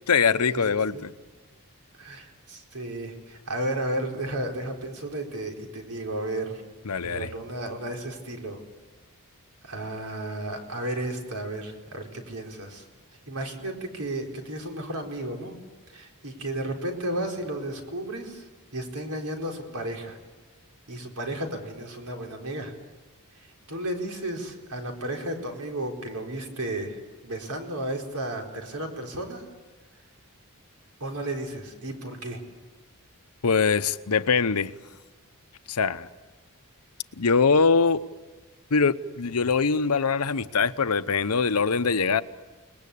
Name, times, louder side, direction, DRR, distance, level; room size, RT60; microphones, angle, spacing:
voice 1, 0.1-1.1 6.9-7.3 33.4-34.7 35.7-36.1 37.2-38.0 38.7-42.2, left 5 dB, 85° left, 13 dB, 0.9 m, -23 dB
voice 2, 2.0-6.6 7.0-8.6 9.6-12.8 13.3-15.6 15.9-18.4 18.7-20.2 20.9-22.7 23.7-27.0 27.2-29.4 31.0-32.4, right 1 dB, 80° right, 2 dB, 4.4 m, -33 dB
29.5 x 20.0 x 8.6 m, 1.3 s
head